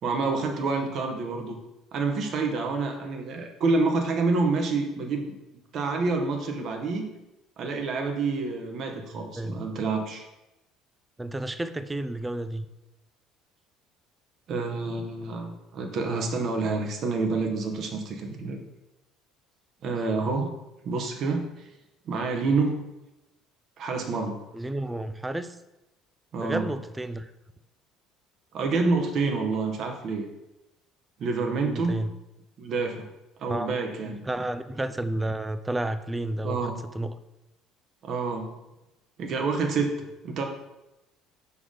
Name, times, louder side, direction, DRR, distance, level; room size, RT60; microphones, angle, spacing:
voice 1, 0.0-1.5 1.9-5.3 5.7-7.1 7.6-10.2 14.5-18.6 19.8-20.5 20.8-21.5 22.1-22.8 23.8-24.4 26.3-26.7 28.5-30.3 31.2-32.0 32.6-33.1 33.4-34.2 36.4-36.8 38.0-38.5 39.2-40.4, right 3 dB, 45° right, 3 dB, 1.2 m, -28 dB
voice 2, 8.9-9.6 11.2-12.7 24.5-25.6 26.4-27.3 31.6-32.1 33.5-33.7 34.1-37.2, right 1 dB, 15° right, 11 dB, 0.5 m, -31 dB
6.1 x 5.8 x 3.9 m, 0.95 s
figure-of-eight pair, 55°, 0 cm